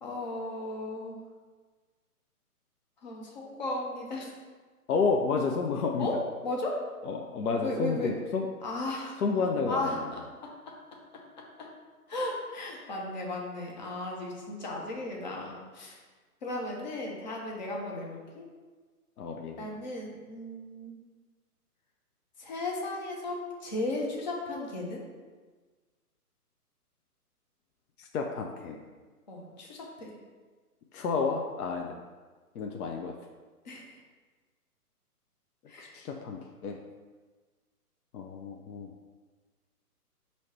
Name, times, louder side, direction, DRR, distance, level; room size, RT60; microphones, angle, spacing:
voice 1, 0.0-1.2 3.0-4.3 6.0-6.8 7.6-8.1 8.6-10.2 11.6-11.7 12.1-16.0 16.4-18.5 19.6-21.0 22.4-25.1 29.3-30.1 33.6-34.0 35.7-36.0, left 2 dB, 30° left, -1 dB, 0.6 m, -35 dB
voice 2, 4.9-6.1 7.0-8.5 9.2-10.1 19.2-19.7 28.0-28.8 30.9-32.0 32.5-33.2 35.8-36.8 38.1-38.9, left 4 dB, 70° left, 2 dB, 0.6 m, -30 dB
5.6 x 2.8 x 3.2 m, 1.4 s
hypercardioid pair, 150°, 46 cm